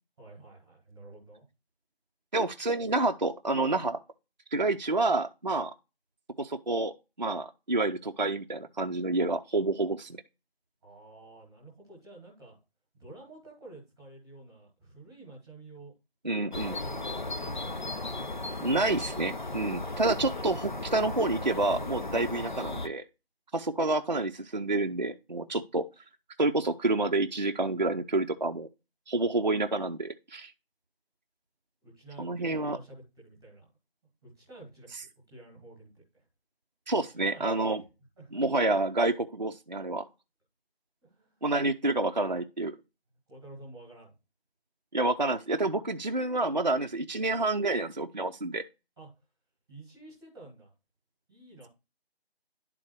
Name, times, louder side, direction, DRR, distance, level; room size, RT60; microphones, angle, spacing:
voice 1, 0.2-1.4 10.8-12.6 12.9-15.9 16.3-17.6 31.8-33.7 34.2-36.2 37.1-37.7 38.2-38.4 41.0-41.5 43.3-44.1 49.0-49.1 49.7-50.7 51.3-51.7, right 2 dB, 5° right, 1.3 m, -50 dB
voice 2, 2.3-4.0 4.5-5.7 6.4-10.2 16.2-16.8 18.6-23.0 23.5-25.9 26.4-28.7 29.1-30.5 32.2-32.8 36.9-37.8 38.3-40.0 41.4-42.8 44.9-48.6, right 2 dB, 45° right, 0.6 m, -28 dB
sound 1, 16.5-22.9, left 2 dB, 45° left, 0.6 m, -36 dB
11.0 x 3.8 x 4.5 m
figure-of-eight pair, 165°, 32 cm